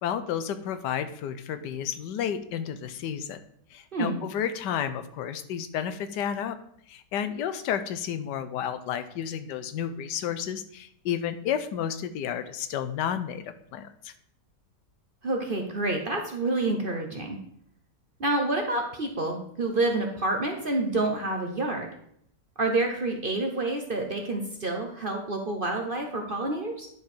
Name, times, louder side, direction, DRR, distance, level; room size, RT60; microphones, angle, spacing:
voice 1, 0.0-3.4 3.7-6.6 6.9-13.4 13.7-14.1, left 9 dB, 85° left, 11 dB, 1.3 m, -31 dB
voice 2, 15.2-17.4 18.2-21.9 22.6-26.9, right 2 dB, 40° right, 2 dB, 0.8 m, -28 dB
10.5 x 4.9 x 4.3 m, 0.69 s
omnidirectional pair, 1.8 m